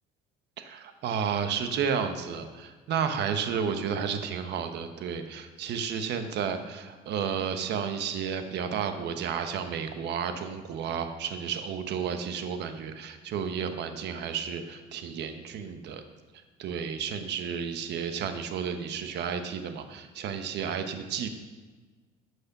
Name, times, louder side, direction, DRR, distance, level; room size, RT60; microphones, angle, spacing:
voice 1, 0.6-16.0 16.6-21.3, right 7 dB, 60° right, 8 dB, 1.1 m, -32 dB
10.0 x 6.5 x 5.9 m, 1.3 s
cardioid pair, 105°, 19 cm